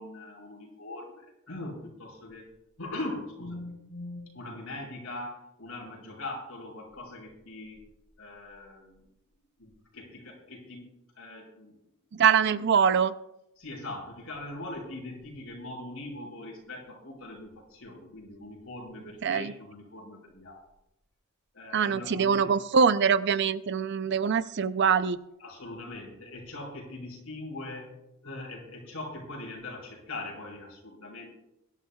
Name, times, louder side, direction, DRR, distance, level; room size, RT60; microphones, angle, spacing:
voice 1, 0.0-2.5 2.8-7.8 8.2-9.1 9.6-11.8 13.6-20.6 21.5-22.5 25.4-27.9 28.2-31.4, left 2 dB, 85° left, -1 dB, 5.1 m, -41 dB
voice 2, 12.1-13.1 19.2-19.5 21.7-25.2, right 6 dB, 55° right, 14 dB, 0.5 m, -24 dB
22.5 x 11.5 x 2.3 m, 0.86 s
head